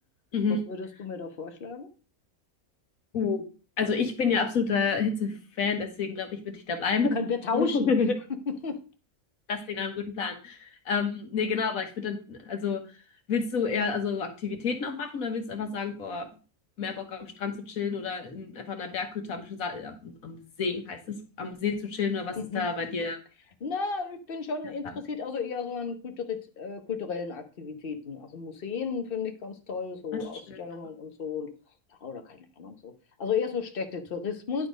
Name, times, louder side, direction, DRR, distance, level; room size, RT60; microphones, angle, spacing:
voice 1, 0.7-1.9 7.1-7.9 8.5-8.8 22.4-22.6 23.6-31.5 32.0-32.9 33.2-34.7, left 5 dB, 45° left, 7 dB, 1.1 m, -33 dB
voice 2, 3.1-3.4 3.8-7.2 7.5-8.1 9.5-12.8 13.3-16.3 16.8-23.2 30.5-30.6, left 5 dB, 75° left, 5 dB, 1.7 m, -29 dB
10.5 x 4.3 x 5.1 m, 0.35 s
omnidirectional pair, 1.5 m